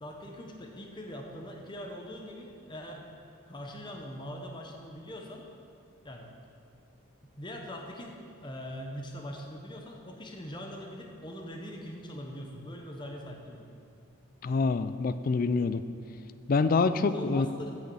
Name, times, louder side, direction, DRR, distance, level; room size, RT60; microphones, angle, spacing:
voice 1, 0.0-3.1 3.5-5.5 6.0-6.3 7.4-13.7 17.0-17.7, equal, 20° left, 1 dB, 0.8 m, -42 dB
voice 2, 14.4-15.8 16.5-17.5, left 4 dB, 40° left, 12 dB, 0.3 m, -26 dB
8.2 x 6.4 x 7.0 m, 2.5 s
head